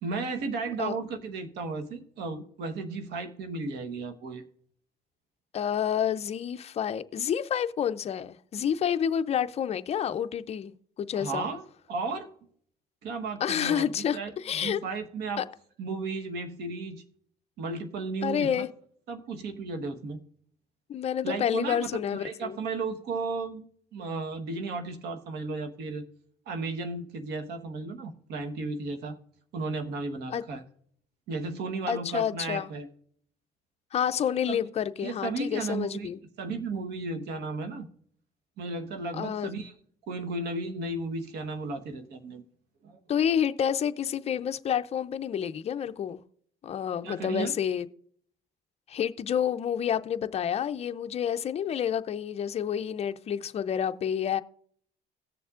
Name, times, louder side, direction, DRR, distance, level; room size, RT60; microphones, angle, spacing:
voice 1, 0.0-4.4 11.1-11.6 11.9-12.3 13.0-15.4 15.8-17.0 17.6-18.7 19.1-20.2 21.2-26.0 26.5-29.2 29.5-30.6 31.3-32.9 34.5-34.6 35.0-36.1 36.4-37.9 38.6-39.7 40.1-42.4 42.8-43.0 47.0-47.5, right 3 dB, 75° right, 1.2 m, -34 dB
voice 2, 5.5-11.5 13.4-14.8 15.4-15.5 18.2-18.7 20.9-22.6 30.3-30.4 31.9-32.7 33.9-36.2 39.1-39.5 43.1-46.2 46.6-47.9 48.9-54.4, left 9 dB, 40° left, 0.5 m, -29 dB
17.5 x 6.9 x 2.4 m
cardioid pair, 110°, 17 cm